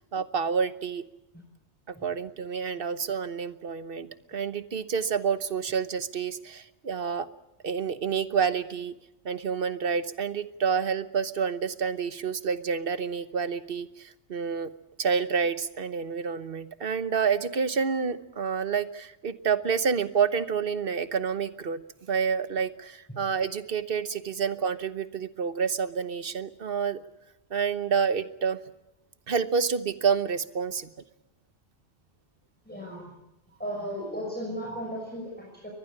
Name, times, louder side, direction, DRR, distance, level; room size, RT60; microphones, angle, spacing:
voice 1, 0.1-1.0 1.9-7.3 7.6-8.9 9.2-14.7 15.0-21.8 22.1-27.0 27.5-28.6 29.3-30.9, right 6 dB, 55° right, 12 dB, 1.2 m, -28 dB
voice 2, 32.7-33.0 33.6-35.7, equal, 10° left, -1 dB, 5.7 m, -35 dB
23.5 x 20.0 x 8.6 m, 0.93 s
omnidirectional pair, 1.2 m